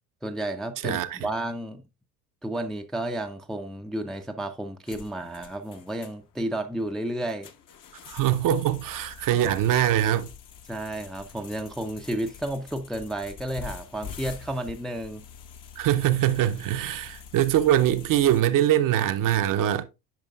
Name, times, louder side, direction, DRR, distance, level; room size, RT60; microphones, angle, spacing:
voice 1, 0.2-1.8 2.4-7.5 10.7-15.3, right 1 dB, ahead, 0.5 m, -32 dB
voice 2, 0.8-1.2 8.0-10.3 15.8-19.8, right 12 dB, 45° right, 0.7 m, -23 dB
sound 1, 4.9-18.4, left 7 dB, 45° left, 0.9 m, -45 dB
9.1 x 5.1 x 2.3 m
hypercardioid pair, 70°, 45 cm